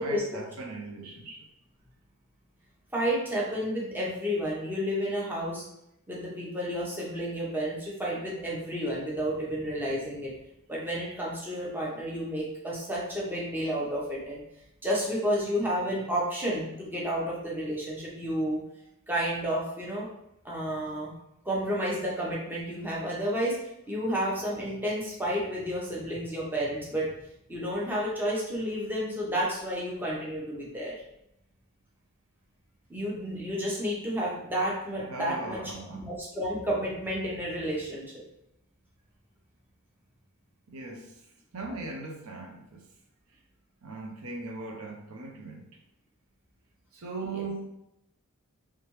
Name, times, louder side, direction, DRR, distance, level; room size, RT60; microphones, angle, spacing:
voice 1, 0.0-1.5 35.0-36.1 40.7-41.1 41.5-42.9 43.8-45.7 46.9-47.7, right 3 dB, 75° right, 1 dB, 0.7 m, -39 dB
voice 2, 2.9-5.6 6.1-10.3 10.7-14.4 14.8-18.6 19.1-20.1 20.4-21.1 21.4-23.6 23.9-27.1 27.5-30.9 32.9-35.6 35.9-38.1 47.3-47.4, equal, 10° right, -5 dB, 0.8 m, -31 dB
3.4 x 3.3 x 3.1 m, 0.82 s
head